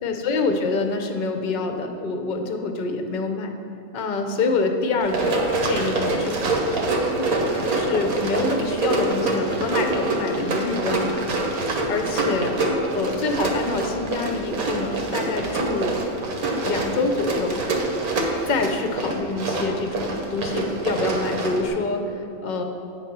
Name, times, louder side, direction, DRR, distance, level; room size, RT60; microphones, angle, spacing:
voice 1, 0.0-3.5 3.9-6.4 7.2-7.3 7.6-11.2 11.9-12.7 12.9-16.0 16.6-17.6 18.5-22.6, left 3 dB, 50° left, 4 dB, 0.6 m, -26 dB
Run, 5.0-21.7, right 2 dB, 90° right, 1.4 m, -25 dB
8.7 x 4.2 x 5.8 m, 2.8 s
omnidirectional pair, 1.5 m